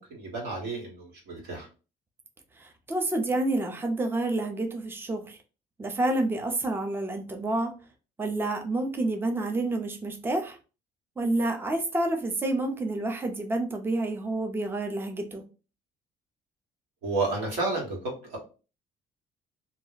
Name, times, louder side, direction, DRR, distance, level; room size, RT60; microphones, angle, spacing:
voice 1, 0.0-1.7 17.0-18.4, right 3 dB, 80° right, -1 dB, 1.3 m, -31 dB
voice 2, 2.6-5.4 5.8-7.7 8.2-10.6 11.2-15.4, right 2 dB, 15° right, 4 dB, 0.5 m, -29 dB
2.4 x 2.0 x 3.8 m, 0.34 s
cardioid pair, 110°, 17 cm